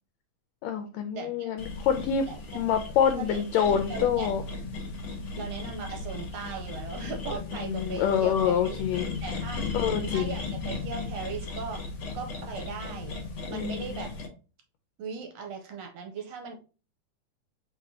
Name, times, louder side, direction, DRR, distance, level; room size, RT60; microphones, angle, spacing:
voice 1, 0.6-2.3 2.5-4.4 7.5-9.1 9.7-10.4 13.5-14.0, left 8 dB, 80° left, 7 dB, 1.7 m, -26 dB
voice 2, 1.2-1.5 2.2-2.4 3.2-4.3 5.4-8.8 9.2-9.7 10.1-11.8 12.1-13.2 13.5-14.1 15.0-16.6, right 5 dB, 70° right, 3 dB, 1.7 m, -38 dB
sound 1, 1.6-14.3, left 3 dB, 55° left, 1.3 m, -36 dB
4.5 x 4.2 x 2.7 m, 0.34 s
omnidirectional pair, 3.3 m